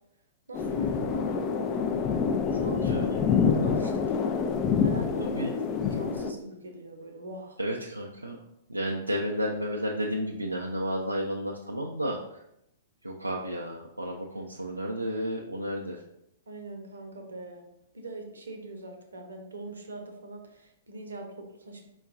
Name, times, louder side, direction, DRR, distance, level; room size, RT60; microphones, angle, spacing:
sound 1, 0.5-6.3, left 6 dB, 30° left, 0.3 m, -27 dB
voice 1, 0.5-3.1 3.5-4.3 4.8-7.6 16.5-17.6 17.9-21.9, right 1 dB, 70° right, 3 dB, 0.8 m, -41 dB
voice 2, 2.7-3.2 5.2-5.5 7.6-8.4 8.7-12.2 13.0-16.0, equal, 90° right, -2 dB, 0.4 m, -32 dB
4.4 x 2.3 x 3.6 m, 0.80 s
figure-of-eight pair, 110°, 0 cm